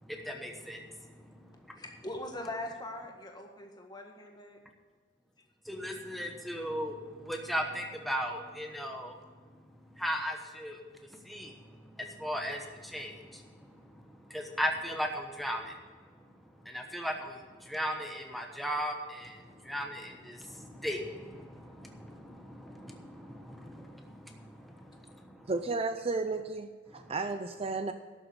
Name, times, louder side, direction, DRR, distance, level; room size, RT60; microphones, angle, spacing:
voice 1, 0.0-1.8 5.6-25.5 26.9-27.2, equal, ahead, 2 dB, 1.1 m, -38 dB
voice 2, 1.8-4.6, left 1 dB, 20° left, 2 dB, 1.7 m, -41 dB
voice 3, 25.5-27.9, right 3 dB, 30° right, 8 dB, 0.5 m, -33 dB
12.0 x 7.2 x 7.9 m, 1.5 s
head